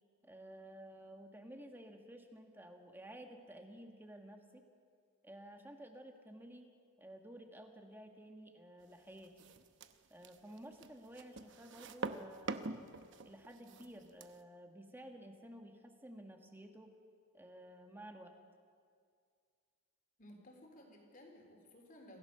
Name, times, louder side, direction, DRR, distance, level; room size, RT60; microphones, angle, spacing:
voice 1, 0.2-4.7 5.2-6.7 7.0-9.4 10.1-12.9 13.2-16.9 17.3-18.3, right 1 dB, 10° right, 4 dB, 1.6 m, -53 dB
sound 1, 9.2-14.4, right 3 dB, 55° right, 0.9 m, -45 dB
voice 2, 20.2-22.2, left 1 dB, 40° left, 1 dB, 3.8 m, -57 dB
27.0 x 16.0 x 6.8 m, 2.2 s
head